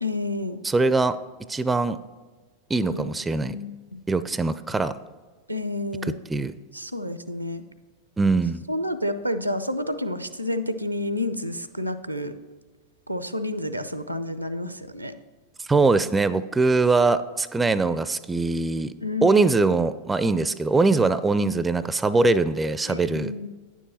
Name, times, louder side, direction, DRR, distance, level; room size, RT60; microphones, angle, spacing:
voice 1, 0.0-0.6 2.9-4.0 5.5-6.2 6.7-7.6 8.7-12.4 13.1-15.2 19.0-19.5 22.9-23.5, left 1 dB, 85° right, 12 dB, 0.5 m, -30 dB
voice 2, 0.6-1.2 1.5-2.0 2.7-3.6 4.1-5.0 6.3-6.5 8.2-8.6 15.7-18.9 19.2-23.3, right 3 dB, 10° right, 15 dB, 0.4 m, -22 dB
9.9 x 7.3 x 4.1 m, 1.4 s
figure-of-eight pair, 90°, 0 cm